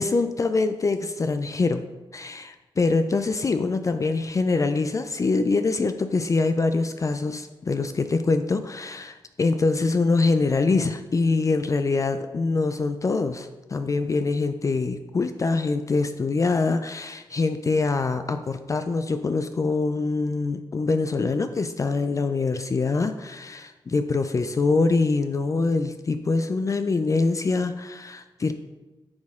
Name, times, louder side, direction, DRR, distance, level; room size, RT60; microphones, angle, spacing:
voice 1, 0.0-1.8 2.1-28.5, left 3 dB, 35° left, 9 dB, 0.4 m, -24 dB
9.4 x 4.2 x 3.6 m, 1.1 s
cardioid pair, 80°, 9 cm